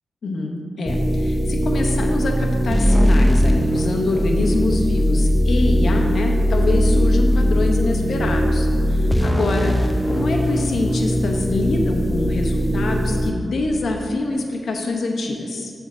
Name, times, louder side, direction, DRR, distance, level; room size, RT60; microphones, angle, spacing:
voice 1, 0.2-15.7, left 2 dB, 70° left, 2 dB, 0.9 m, -25 dB
sound 1, 0.9-13.3, equal, ahead, 0.5 m, -19 dB
8.0 x 3.6 x 6.2 m, 2.3 s
cardioid pair, 75°, 0 cm